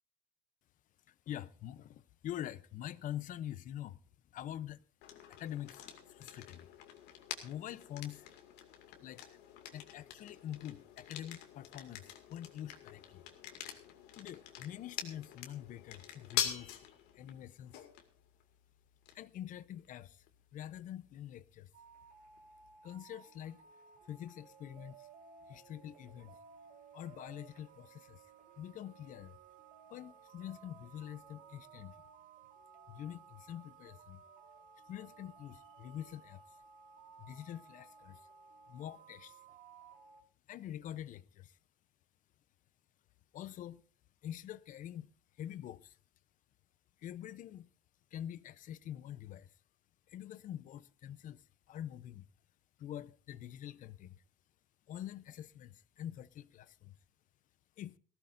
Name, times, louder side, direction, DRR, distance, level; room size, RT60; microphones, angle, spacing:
voice 1, 1.1-4.0 4.3-4.8 5.3-6.7 7.4-8.3 9.0-9.2 9.7-13.2 14.2-16.9 17.1-17.9 19.1-20.3 20.5-21.7 22.8-23.6 24.1-25.1 25.5-26.4 26.9-28.2 28.6-29.4 29.9-31.9 32.9-34.2 34.9-36.4 37.2-38.2 38.7-39.4 40.5-41.6 43.3-43.8 44.2-45.1 45.4-46.0 47.0-47.7 48.1-49.6 50.1-52.3 52.8-54.2 54.9-57.0 57.8-58.0, left 11 dB, 50° left, 0.8 m, -45 dB
sound 1, 5.0-22.7, left 10 dB, 90° left, 2.3 m, -46 dB
sound 2, 21.7-40.2, right 6 dB, 65° right, 2.8 m, -58 dB
19.5 x 15.5 x 2.6 m
cardioid pair, 135°, 17 cm